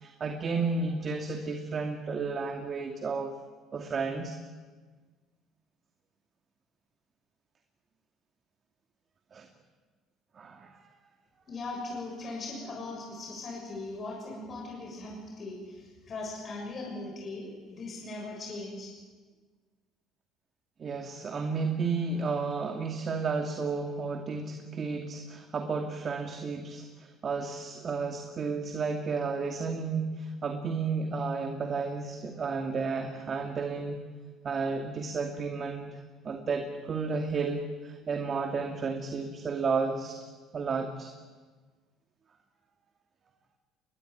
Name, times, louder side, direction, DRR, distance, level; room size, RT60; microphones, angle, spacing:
voice 1, 0.0-3.3 3.7-4.4 9.3-9.5 10.4-10.8 20.8-34.0 34.4-36.0 36.2-40.2 40.5-41.1, right 4 dB, 40° right, 4 dB, 2.5 m, -32 dB
voice 2, 11.5-18.9, left 2 dB, 45° left, 0 dB, 6.8 m, -39 dB
21.5 x 21.5 x 9.6 m, 1.4 s
supercardioid pair, 75°, 0 cm